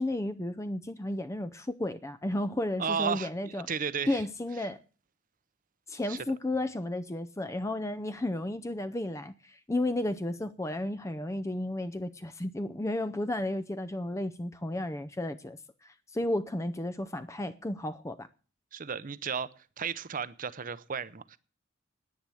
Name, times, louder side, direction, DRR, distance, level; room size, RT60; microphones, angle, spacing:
voice 1, 0.0-3.7 4.1-4.8 5.9-18.3, left 1 dB, 15° left, 0.5 m, -33 dB
voice 2, 2.8-4.2 4.6-4.7 6.1-6.2 18.7-21.4, right 6 dB, 40° right, 0.6 m, -34 dB
10.5 x 9.7 x 7.7 m
head